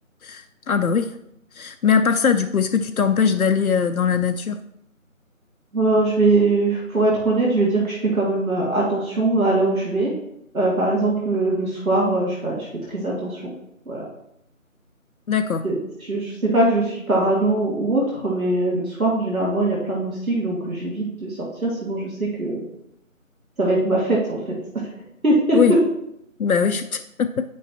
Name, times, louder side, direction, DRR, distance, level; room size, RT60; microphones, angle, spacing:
voice 1, 0.2-1.1 1.5-4.6 15.3-15.6 25.5-25.7 26.4-27.4, left 6 dB, 85° left, 7 dB, 0.6 m, -21 dB
voice 2, 5.7-10.1 10.5-13.5 13.9-14.1 15.6-22.6 23.6-24.6 25.2-25.6, right 2 dB, 80° right, -4 dB, 2.1 m, -22 dB
9.3 x 5.4 x 2.9 m, 0.78 s
figure-of-eight pair, 170°, 41 cm